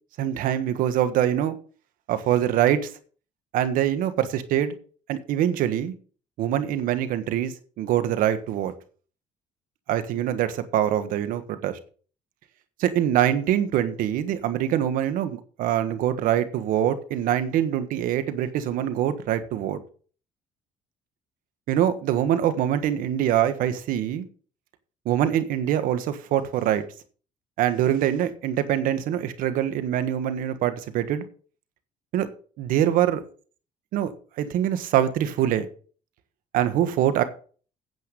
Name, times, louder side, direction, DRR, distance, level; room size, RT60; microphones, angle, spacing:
voice 1, 0.2-1.5 2.1-2.9 3.5-4.7 5.1-5.9 6.4-8.7 9.9-11.8 12.8-19.8 21.7-24.3 25.0-26.8 27.6-31.2 32.1-32.3 32.6-33.2 33.9-34.1 34.4-35.7 36.5-37.2, right 11 dB, 80° right, 1.4 m, -24 dB
9.5 x 8.0 x 5.3 m
cardioid pair, 95°, 14 cm